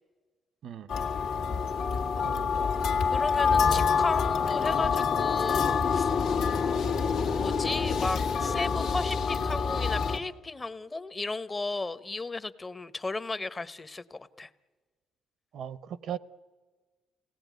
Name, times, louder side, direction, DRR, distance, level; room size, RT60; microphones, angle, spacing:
sound 1, 0.9-10.2, left 5 dB, 90° left, 1.8 m, -26 dB
voice 1, 2.2-2.7 3.6-4.1 15.5-16.2, right 8 dB, 70° right, 0.6 m, -38 dB
voice 2, 3.1-6.1 7.4-14.5, left 3 dB, 25° left, 0.8 m, -35 dB
28.5 x 18.0 x 9.2 m
cardioid pair, 90°, 0 cm